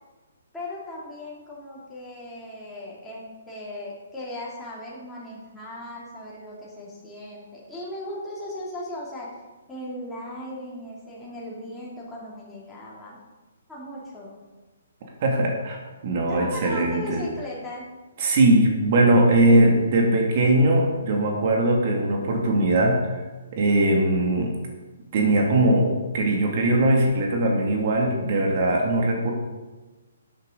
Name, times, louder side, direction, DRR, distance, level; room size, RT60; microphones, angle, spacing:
voice 1, 0.5-9.3 9.7-13.2 13.7-14.4 16.3-17.9, left 1 dB, 5° left, -8 dB, 3.0 m, -37 dB
voice 2, 15.2-15.8 16.0-17.2 18.2-23.2 23.5-24.5 25.1-29.3, right 1 dB, 45° right, 0 dB, 2.4 m, -20 dB
13.0 x 8.9 x 4.0 m, 1.2 s
figure-of-eight pair, 130°, 0 cm